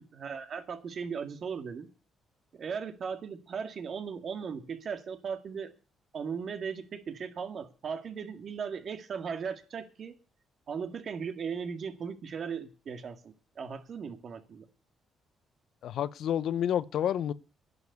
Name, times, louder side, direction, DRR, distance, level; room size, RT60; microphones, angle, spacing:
voice 1, 0.0-1.9 2.5-5.7 6.1-10.2 10.7-14.7, right 6 dB, 55° right, 1.9 m, -37 dB
voice 2, 15.8-17.3, left 10 dB, 75° left, 0.7 m, -29 dB
11.0 x 7.1 x 9.5 m
cardioid pair, 90°, 0 cm